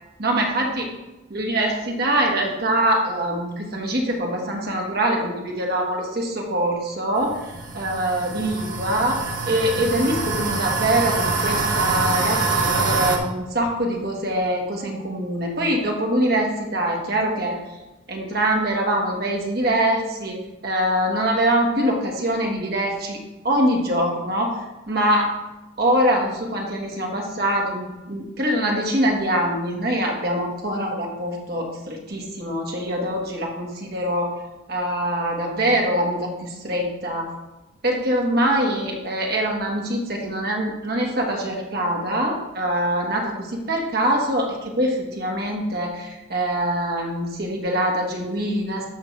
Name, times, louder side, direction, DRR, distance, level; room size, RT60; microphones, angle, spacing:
voice 1, 0.2-0.9 1.3-17.6 18.1-23.2 23.4-24.6 24.9-25.3 25.8-34.4 34.7-37.3 37.8-48.9, right 1 dB, 50° right, 0 dB, 1.6 m, -24 dB
sound 1, 7.2-13.2, right 3 dB, 65° right, 1.2 m, -25 dB
13.0 x 5.5 x 3.4 m, 1.0 s
head